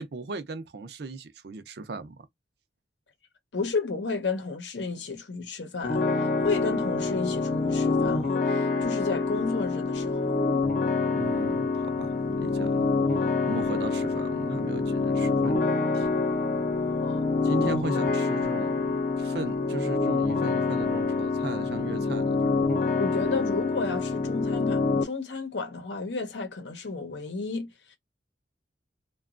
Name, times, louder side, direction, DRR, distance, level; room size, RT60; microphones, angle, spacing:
voice 1, 0.0-2.2 11.1-12.9 13.1-16.1 17.4-22.8, right 3 dB, 65° right, 0.5 m, -37 dB
voice 2, 3.5-10.4 17.0-17.3 23.0-28.0, left 4 dB, 80° left, 0.8 m, -32 dB
sound 1, 5.8-25.0, left 3 dB, 45° left, 0.5 m, -26 dB
2.9 x 2.2 x 2.4 m
head